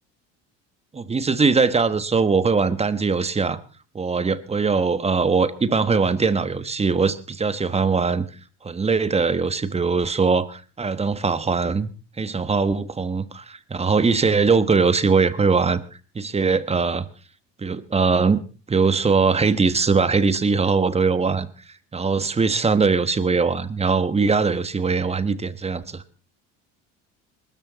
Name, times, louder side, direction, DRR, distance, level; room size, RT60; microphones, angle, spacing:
voice 1, 0.9-3.6 3.9-8.3 8.6-11.9 12.2-15.8 16.1-17.1 17.6-18.4 18.7-21.5 21.9-26.0, right 4 dB, 20° right, 14 dB, 1.3 m, -21 dB
21.0 x 13.0 x 4.1 m, 0.36 s
supercardioid pair, 105°, 33 cm